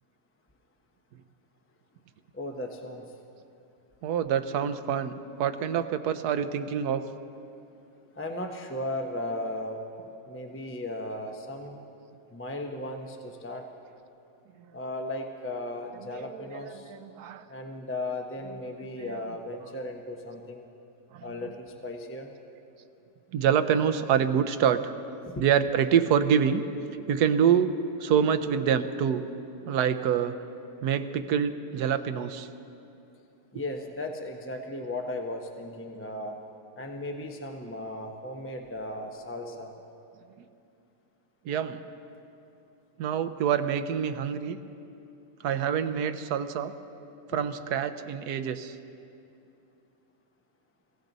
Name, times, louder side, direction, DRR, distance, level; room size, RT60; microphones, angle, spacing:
voice 1, 2.3-3.2 8.2-11.8 12.3-13.7 14.7-16.9 17.5-20.7 21.2-22.3 25.3-25.5 33.5-36.4 36.8-39.7 47.3-47.4, left 1 dB, 15° left, 3 dB, 0.5 m, -36 dB
voice 2, 4.0-5.1 5.4-7.0 16.0-17.4 18.4-18.6 19.0-19.3 19.6-19.7 21.1-21.5 23.3-24.9 25.3-26.6 27.1-27.7 28.0-29.2 29.7-30.3 30.8-32.5 33.5-33.6 41.5-41.8 43.0-44.6 45.4-46.7 47.3-48.8, right 8 dB, 75° right, 10 dB, 1.2 m, -26 dB
22.5 x 16.0 x 4.0 m, 2.7 s
omnidirectional pair, 1.8 m